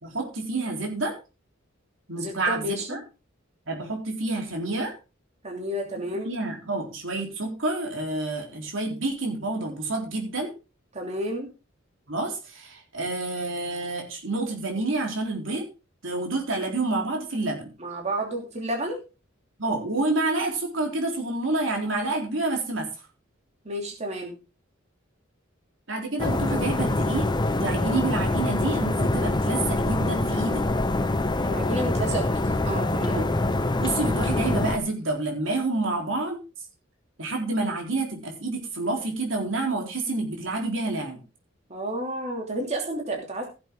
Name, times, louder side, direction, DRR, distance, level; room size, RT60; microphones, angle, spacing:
voice 1, 0.0-1.2 2.1-3.0 3.7-4.9 6.2-10.5 12.1-15.7 16.0-17.7 19.6-22.9 25.9-27.3 27.6-30.6 33.1-33.3 33.8-36.4 37.2-41.2, right 2 dB, 75° right, 1 dB, 3.8 m, -28 dB
voice 2, 2.2-3.0 5.4-6.3 10.9-11.5 17.8-19.0 23.6-24.3 31.4-33.2 41.7-43.5, right 1 dB, 35° right, 0 dB, 3.0 m, -31 dB
sound 1, 26.2-34.8, left 2 dB, 25° left, 0.8 m, -25 dB
16.5 x 7.7 x 3.8 m, 0.30 s
head